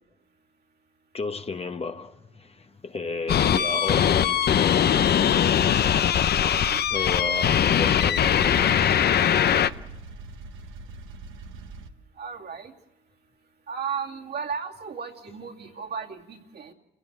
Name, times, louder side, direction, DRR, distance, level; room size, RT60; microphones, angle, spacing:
voice 1, 1.1-4.9 6.9-9.0, left 4 dB, 30° left, 1.1 m, -33 dB
sound 1, 3.3-9.7, left 9 dB, 55° left, 0.8 m, -21 dB
voice 2, 6.1-6.8 12.2-12.7 13.7-16.7, right 6 dB, 55° right, 2.5 m, -35 dB
sound 2, 6.4-11.9, right 3 dB, 85° right, 1.5 m, -42 dB
29.5 x 16.5 x 7.2 m
cardioid pair, 90°, 20 cm